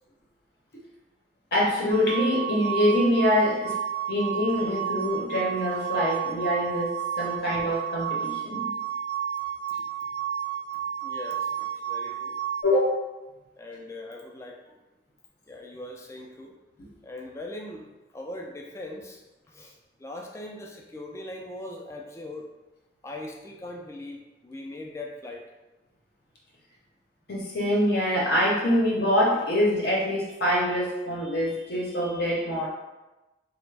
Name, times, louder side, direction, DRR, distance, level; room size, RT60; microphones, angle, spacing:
voice 1, 1.5-3.8 4.1-8.7 12.6-13.0 27.3-32.7, left 1 dB, 60° left, -4 dB, 0.6 m, -25 dB
sound 1, 1.9-12.6, right 9 dB, 70° right, 0.3 m, -31 dB
voice 2, 11.0-12.4 13.6-14.8 15.5-16.5 16.8-17.9 18.1-19.2 19.5-19.7 20.0-22.5 23.0-25.4, left 1 dB, 15° left, 1 dB, 0.3 m, -40 dB
3.3 x 2.1 x 3.2 m, 1.1 s
head